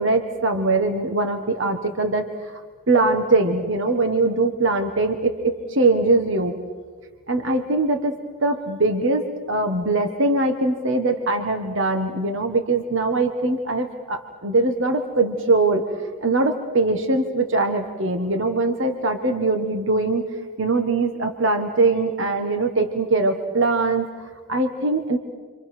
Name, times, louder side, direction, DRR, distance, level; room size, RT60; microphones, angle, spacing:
voice 1, 0.0-2.3 2.9-6.6 7.3-15.8 16.2-20.2 20.6-24.1 24.5-25.2, right 2 dB, 60° right, 6 dB, 1.5 m, -22 dB
30.0 x 25.5 x 6.1 m, 1.5 s
head